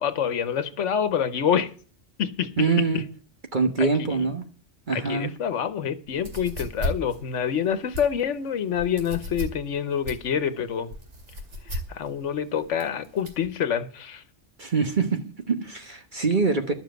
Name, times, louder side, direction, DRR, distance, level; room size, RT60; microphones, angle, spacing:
voice 1, 0.0-1.7 2.2-2.7 2.9-3.0 3.8-4.3 4.9-10.9 11.7-14.2, left 8 dB, 80° left, 1.2 m, -27 dB
voice 2, 2.6-3.0 3.5-4.4 4.9-5.3 14.6-16.7, right 4 dB, 45° right, 1.3 m, -24 dB
sound 1, 6.1-13.5, left 1 dB, 75° right, 2.8 m, -35 dB
11.5 x 7.3 x 7.8 m
omnidirectional pair, 1.2 m